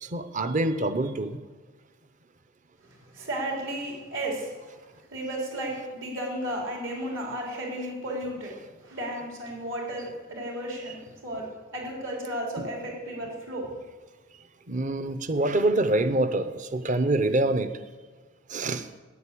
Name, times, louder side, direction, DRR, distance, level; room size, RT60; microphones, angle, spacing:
voice 1, 0.0-1.4 12.6-12.7 14.7-17.7 18.5-18.9, right 2 dB, 40° right, 11 dB, 0.7 m, -25 dB
voice 2, 2.8-4.8 5.1-8.5 8.8-11.5 11.7-13.7, right 1 dB, 70° right, -2 dB, 4.0 m, -34 dB
9.6 x 9.4 x 8.4 m, 1.4 s
head